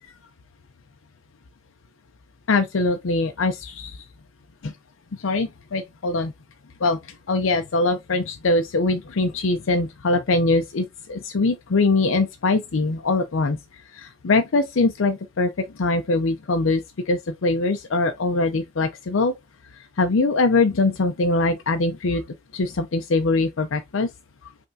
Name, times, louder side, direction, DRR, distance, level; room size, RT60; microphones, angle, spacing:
voice 1, 2.5-4.0 4.6-4.7 5.2-6.3 6.8-7.0 7.3-13.6 13.9-19.3 20.0-22.2 22.5-24.1, left 3 dB, 70° left, 0.6 m, -22 dB
5.5 x 3.5 x 2.7 m
head